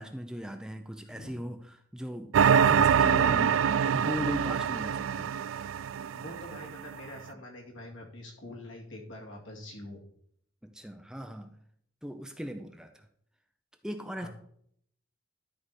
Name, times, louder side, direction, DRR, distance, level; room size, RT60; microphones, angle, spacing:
voice 1, 0.0-2.4 2.7-5.6 7.3-7.4 10.6-11.5 12.0-13.1 13.8-14.3, equal, 5° right, 6 dB, 0.5 m, -38 dB
voice 2, 1.1-1.4 6.2-10.0 14.2-14.3, left 1 dB, 70° left, -1 dB, 2.4 m, -45 dB
sound 1, 2.3-6.8, right 7 dB, 75° right, 0.3 m, -25 dB
12.5 x 4.7 x 4.3 m, 0.66 s
head